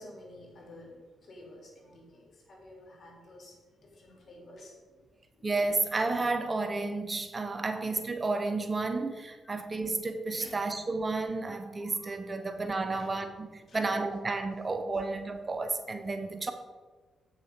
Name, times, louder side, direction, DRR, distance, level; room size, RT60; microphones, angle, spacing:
voice 1, 0.0-5.0 5.4-5.5 7.6-7.7 9.4-9.6 10.4-10.6 12.9-13.1 13.6-13.8, left 1 dB, 60° left, 2.9 m, -51 dB
voice 2, 5.4-16.5, right 3 dB, 35° right, 1.0 m, -32 dB
8.3 x 7.0 x 5.3 m
supercardioid pair, 55°, 0 cm